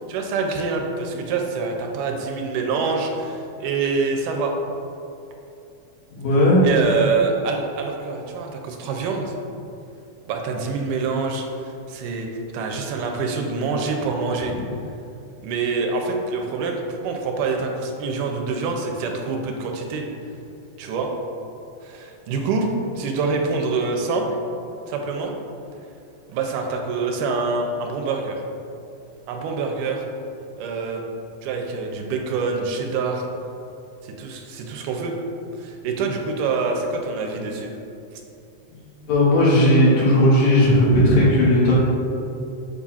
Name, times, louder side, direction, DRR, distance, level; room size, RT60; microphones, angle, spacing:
voice 1, 0.1-4.5 6.6-9.3 10.3-12.3 12.5-14.5 15.4-20.0 20.8-21.1 21.8-22.7 23.0-24.3 24.9-25.3 26.3-28.4 29.3-30.0 30.6-31.0 31.4-33.3 34.0-35.2 35.6-37.7, right 4 dB, 90° right, 2 dB, 2.2 m, -25 dB
voice 2, 6.2-6.6 38.7-38.8 39.1-41.8, left 1 dB, 70° left, -6 dB, 2.5 m, -16 dB
7.1 x 2.4 x 5.5 m, 2.7 s
omnidirectional pair, 3.6 m